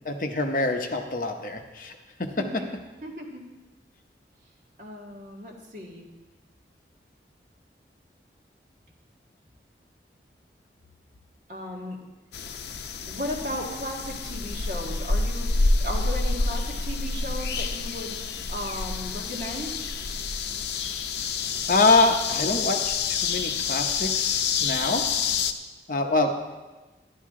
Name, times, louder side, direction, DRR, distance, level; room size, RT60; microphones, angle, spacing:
voice 1, 0.0-1.9 2.2-2.3 21.7-25.0 25.9-26.3, left 3 dB, 50° left, 4 dB, 0.8 m, -25 dB
voice 2, 2.4-2.7 3.0-3.4 4.8-6.1 11.5-12.0 13.1-15.5 15.8-18.2 18.5-19.8, left 1 dB, 45° right, -2 dB, 1.8 m, -35 dB
sound 1, 12.3-25.5, left 4 dB, 80° left, 0.6 m, -28 dB
11.5 x 11.0 x 3.7 m, 1.2 s
head